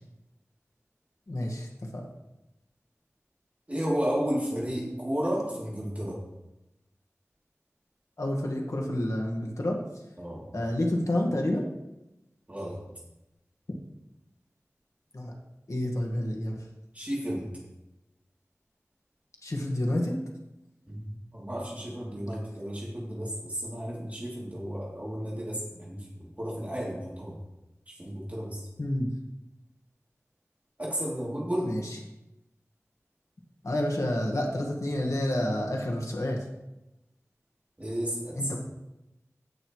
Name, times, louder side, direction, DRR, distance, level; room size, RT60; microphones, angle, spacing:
voice 1, 1.3-1.7 1.9-2.1 8.2-9.8 10.5-11.7 15.1-15.3 15.7-16.5 19.4-20.2 28.8-29.1 31.6-31.8 33.6-36.4 38.4-38.6, left 1 dB, 75° left, 0 dB, 1.7 m, -29 dB
voice 2, 3.7-6.2 10.2-10.4 12.5-12.8 16.9-17.5 20.9-27.4 27.9-28.7 30.8-31.8 37.8-38.6, equal, 25° right, -6 dB, 3.0 m, -33 dB
16.5 x 6.6 x 3.2 m, 0.94 s
wide cardioid pair, 50°, 5 cm